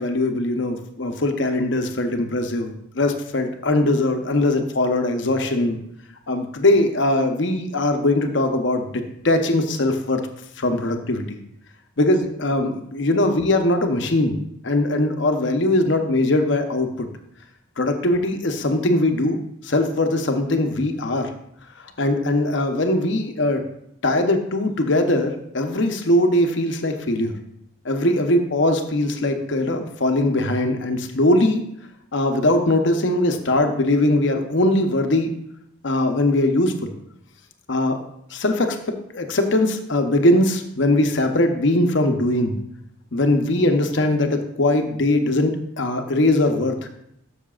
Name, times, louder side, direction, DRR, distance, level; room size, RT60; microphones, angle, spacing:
voice 1, 0.0-5.8 6.3-10.2 10.6-11.4 12.0-17.1 17.8-19.4 19.6-21.3 22.0-23.6 24.0-27.3 27.8-31.6 32.1-35.3 35.8-36.9 37.7-38.0 38.3-38.8 39.1-42.6 43.1-46.9, left 1 dB, 60° left, 5 dB, 0.8 m, -21 dB
12.5 x 6.5 x 2.4 m, 0.76 s
head